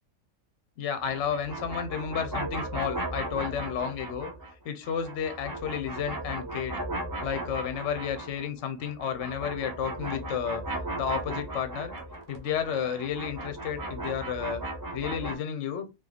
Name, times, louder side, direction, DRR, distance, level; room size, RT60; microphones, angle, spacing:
voice 1, 0.8-4.3 4.6-6.8 7.2-10.6 11.0-11.9 12.3-14.6 14.9-15.9, left 8 dB, 65° left, 9 dB, 0.9 m, -32 dB
sound 1, 1.0-4.5 4.8-8.5 8.8-15.4, right 1 dB, 25° right, 0.4 m, -36 dB
2.9 x 2.4 x 3.8 m, 0.25 s
omnidirectional pair, 1.4 m